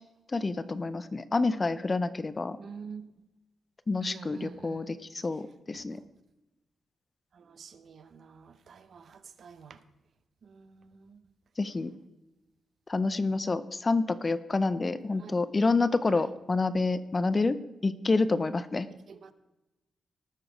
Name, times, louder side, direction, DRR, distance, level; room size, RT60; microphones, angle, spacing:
voice 1, 0.3-2.6 3.9-5.0 5.2-6.0 11.6-11.9 12.9-18.9, left 3 dB, 20° left, 0.4 m, -28 dB
voice 2, 2.6-3.3 4.0-6.1 7.3-9.8 10.4-11.3 11.6-11.7 15.1-15.3 16.1-16.4 19.1-19.3, right 5 dB, 50° right, 0.7 m, -48 dB
18.5 x 6.8 x 4.9 m
wide cardioid pair, 165°, 0 cm